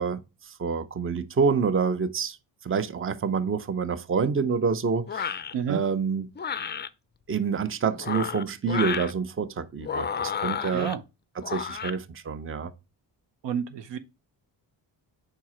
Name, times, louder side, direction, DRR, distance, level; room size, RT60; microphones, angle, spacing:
voice 1, 0.0-2.4 2.6-5.4 5.7-6.3 7.3-10.9 11.4-12.7, right 5 dB, 30° right, 0.7 m, -27 dB
sound 1, 5.1-5.5 6.3-6.9 7.9-9.1 9.8-10.9 11.4-12.0, left 7 dB, 25° left, 0.4 m, -31 dB
voice 2, 13.4-14.0, right 8 dB, 70° right, 0.7 m, -29 dB
4.9 x 4.6 x 4.2 m
cardioid pair, 65°, 46 cm